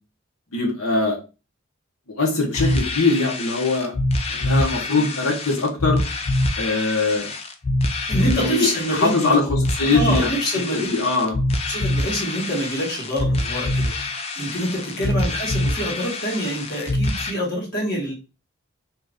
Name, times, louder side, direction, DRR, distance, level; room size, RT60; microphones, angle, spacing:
voice 1, 0.5-1.2 2.2-3.9 4.3-6.0 6.6-7.3 8.1-10.3 10.7-11.4 15.0-15.1, left 3 dB, 85° left, 0 dB, 1.1 m, -22 dB
sound 1, 2.5-17.3, left 1 dB, 30° left, 0.4 m, -25 dB
voice 2, 8.1-9.4 9.8-10.9 11.2-11.3 11.7-18.1, equal, 50° left, -4 dB, 1.6 m, -26 dB
3.0 x 2.5 x 3.5 m, 0.31 s
head